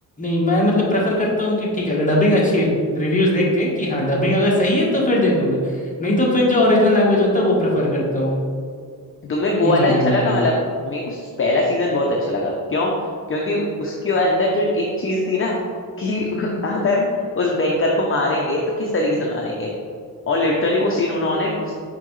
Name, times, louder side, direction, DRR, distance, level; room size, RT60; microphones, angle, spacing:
voice 1, 0.2-8.4 9.6-10.4, left 1 dB, 20° left, -4 dB, 1.3 m, -19 dB
voice 2, 9.3-10.6 10.8-12.9 13.3-15.6 16.0-19.7 20.3-21.7, left 2 dB, 35° left, -1 dB, 0.6 m, -21 dB
5.8 x 5.4 x 3.1 m, 2.2 s
wide cardioid pair, 145°, 36 cm